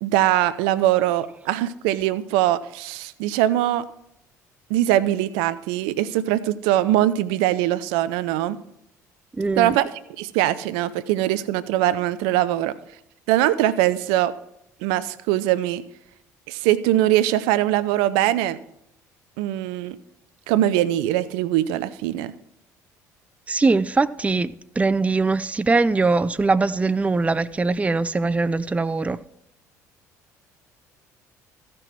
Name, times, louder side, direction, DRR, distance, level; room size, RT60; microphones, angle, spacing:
voice 1, 0.0-3.8 4.7-8.6 9.6-9.9 10.2-12.7 13.3-14.3 14.8-15.8 16.5-18.6 19.4-20.0 20.5-22.3, right 13 dB, 70° right, 0.6 m, -22 dB
voice 2, 9.4-9.8 23.5-29.2, right 3 dB, 15° right, 0.5 m, -21 dB
15.0 x 6.1 x 4.6 m
hypercardioid pair, 60°, 9 cm